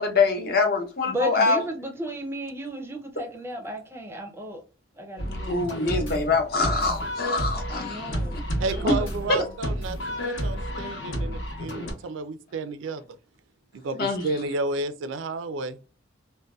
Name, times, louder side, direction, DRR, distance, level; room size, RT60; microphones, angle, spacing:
voice 1, 0.0-1.6 5.5-8.4 9.3-9.4 14.0-14.3, left 3 dB, 50° left, 0.7 m, -24 dB
voice 2, 1.0-4.6 5.0-5.6 7.7-9.5, equal, 10° right, 0.4 m, -34 dB
sound 1, 5.2-11.9, equal, 75° left, 0.9 m, -31 dB
voice 3, 8.6-13.0 13.7-15.8, right 3 dB, 75° right, 0.3 m, -31 dB
2.6 x 2.1 x 2.2 m
head